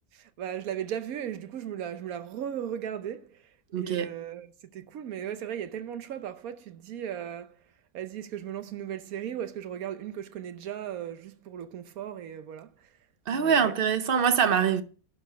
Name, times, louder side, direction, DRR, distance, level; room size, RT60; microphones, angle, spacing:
voice 1, 0.1-3.4 3.8-7.5 7.9-12.7 13.3-13.7, right 9 dB, 90° right, 1.3 m, -37 dB
voice 2, 3.7-4.1 13.3-14.8, right 7 dB, 50° right, 0.8 m, -24 dB
11.5 x 4.8 x 5.4 m
omnidirectional pair, 1.5 m